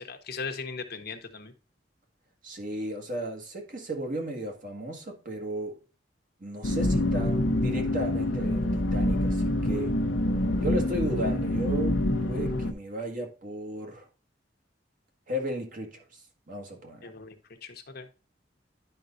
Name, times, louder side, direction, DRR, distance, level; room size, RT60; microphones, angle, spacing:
voice 1, 0.0-1.5 17.0-17.3 17.6-18.1, left 5 dB, 55° left, 1.0 m, -38 dB
voice 2, 2.4-5.8 6.4-9.9 10.6-14.1 15.3-16.2 16.5-17.1, right 1 dB, 50° right, 1.6 m, -35 dB
sound 1, 6.6-12.7, left 1 dB, 90° left, 0.8 m, -26 dB
10.5 x 5.2 x 2.6 m
head